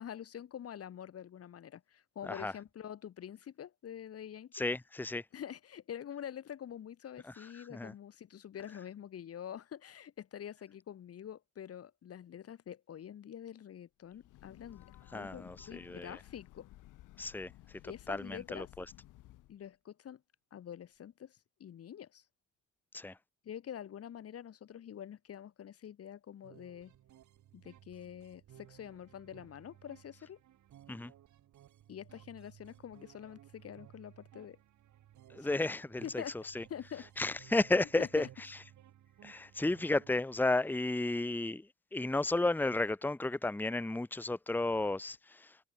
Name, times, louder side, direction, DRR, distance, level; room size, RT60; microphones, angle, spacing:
voice 1, 0.0-4.6 5.3-16.7 17.8-18.7 19.5-20.2 20.5-22.2 23.4-26.9 27.5-30.4 31.9-34.6 35.4-35.5 36.0-36.3 36.7-37.1 38.0-38.3, left 9 dB, 50° left, 1.2 m, -46 dB
voice 2, 4.5-5.2 7.7-7.9 15.1-16.2 17.2-17.5 18.1-18.8 22.9-23.2 30.9-31.1 35.3-36.2 36.5-36.6 37.2-38.3 39.2-45.5, left 2 dB, 5° left, 1.0 m, -33 dB
Breathing / Train, 14.1-19.6, left 15 dB, 85° left, 4.3 m, -57 dB
sound 1, 26.4-40.1, right 12 dB, 75° right, 5.2 m, -59 dB
cardioid pair, 90°, 30 cm